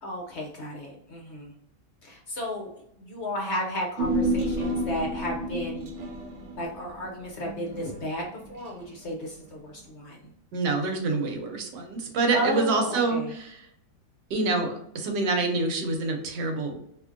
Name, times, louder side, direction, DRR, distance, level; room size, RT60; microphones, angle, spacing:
voice 1, 0.0-1.5 2.0-2.7 3.0-5.9 6.6-10.3 12.3-13.3, equal, 55° left, 0 dB, 0.8 m, -33 dB
Human voice, 4.0-8.6 8.9-9.0, right 1 dB, 65° right, 0.8 m, -30 dB
voice 2, 10.5-13.7 14.3-16.8, right 3 dB, 85° right, 3 dB, 1.5 m, -26 dB
3.6 x 3.0 x 2.5 m, 0.75 s
omnidirectional pair, 1.8 m